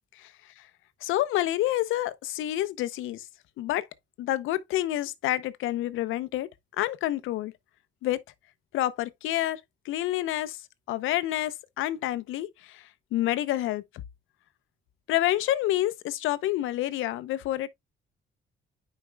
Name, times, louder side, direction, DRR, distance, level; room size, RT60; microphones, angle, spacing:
voice 1, 1.0-3.3 3.6-3.8 4.2-6.5 6.8-7.5 8.0-8.2 8.7-10.6 10.9-13.8 15.1-17.7, left 14 dB, 85° left, 0.7 m, -28 dB
9.2 x 5.0 x 2.2 m
cardioid pair, 90°, 20 cm